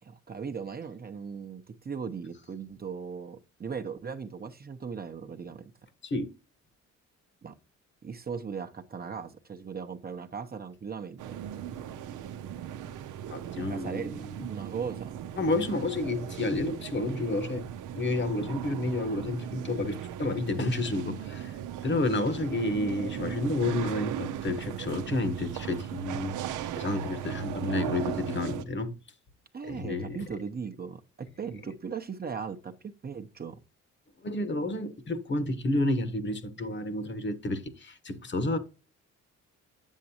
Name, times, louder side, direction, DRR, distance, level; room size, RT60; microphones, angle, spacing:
voice 1, 0.0-5.7 7.4-7.5 8.0-11.4 13.6-15.1 29.5-32.7 33.0-33.6, right 6 dB, 30° right, 0.8 m, -38 dB
sound 1, 11.2-28.6, right 10 dB, 85° right, 0.7 m, -37 dB
voice 2, 13.3-14.5 15.4-17.6 17.9-21.5 21.8-26.4 26.7-28.9 29.6-30.2 34.2-38.6, left 2 dB, 35° left, 1.2 m, -30 dB
7.6 x 7.3 x 2.8 m
cardioid pair, 90°, 30 cm